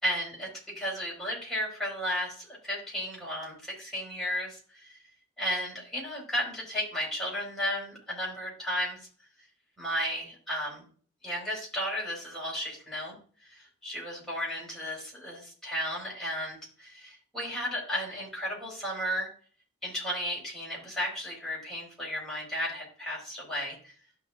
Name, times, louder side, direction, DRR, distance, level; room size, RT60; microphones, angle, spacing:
voice 1, 0.0-5.0 5.4-9.0 9.8-10.9 11.2-13.2 13.4-19.3 19.8-23.9, equal, ahead, -5 dB, 4.5 m, -34 dB
13.0 x 6.1 x 2.4 m, 0.43 s
head